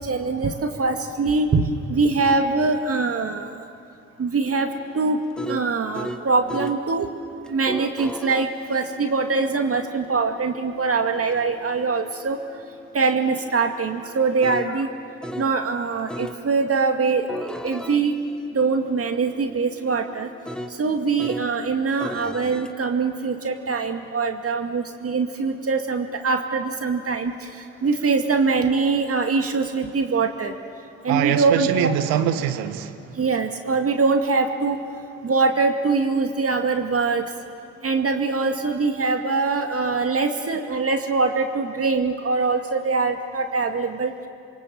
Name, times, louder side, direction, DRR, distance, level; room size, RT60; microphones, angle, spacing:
voice 1, 0.0-3.5 4.2-4.7 4.9-5.2 5.5-7.1 7.5-12.4 12.9-14.9 15.4-18.1 18.5-20.3 20.8-27.3 27.8-30.5 31.0-31.7 33.2-34.8 35.2-37.2 37.8-44.1, right 4 dB, 40° right, 5 dB, 2.2 m, -23 dB
sound 1, 4.4-6.8 7.5-15.6 16.1-16.4 17.1-21.5 22.0-22.7, equal, ahead, 1.9 m, -38 dB
voice 2, 31.1-33.1, right 10 dB, 70° right, 10 dB, 1.6 m, -23 dB
28.0 x 23.5 x 7.7 m, 2.4 s
hypercardioid pair, 50°, 37 cm